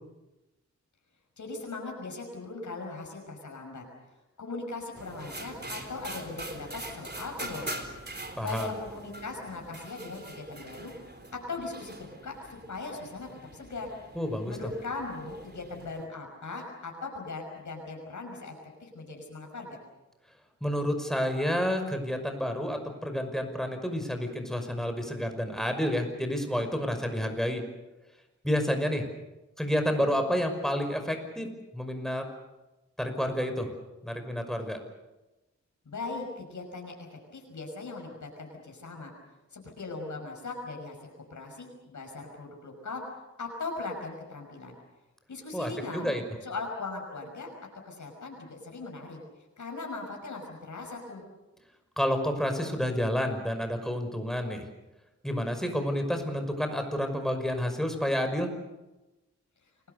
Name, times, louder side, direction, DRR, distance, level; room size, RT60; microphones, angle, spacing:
voice 1, 1.4-3.8 4.4-7.9 8.4-13.9 14.5-18.5 18.8-19.8 35.9-36.9 37.3-39.1 39.5-43.0 43.4-44.8 45.3-46.1 46.4-47.5 47.9-49.2 49.6-51.2 59.6-59.7, left 3 dB, 85° left, 1 dB, 5.7 m, -39 dB
sound 1, 4.9-16.1, right 1 dB, 35° right, 4.0 m, -43 dB
voice 2, 8.4-8.7 14.2-14.6 20.6-27.6 28.4-29.0 29.6-32.2 33.0-33.7 34.0-34.8 45.5-46.2 52.0-54.6 55.2-58.5, equal, ahead, 6 dB, 5.7 m, -29 dB
29.0 x 21.5 x 6.8 m, 1.0 s
wide cardioid pair, 70°, 29 cm